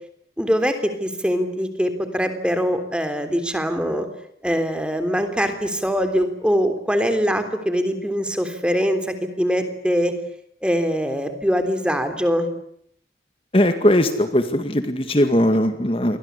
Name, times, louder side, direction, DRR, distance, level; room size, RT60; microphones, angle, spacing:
voice 1, 0.4-4.1 4.4-10.1 10.6-12.5, equal, 5° right, 8 dB, 3.4 m, -22 dB
voice 2, 13.5-16.2, left 1 dB, 30° left, 8 dB, 2.0 m, -19 dB
29.5 x 24.0 x 8.3 m, 0.70 s
head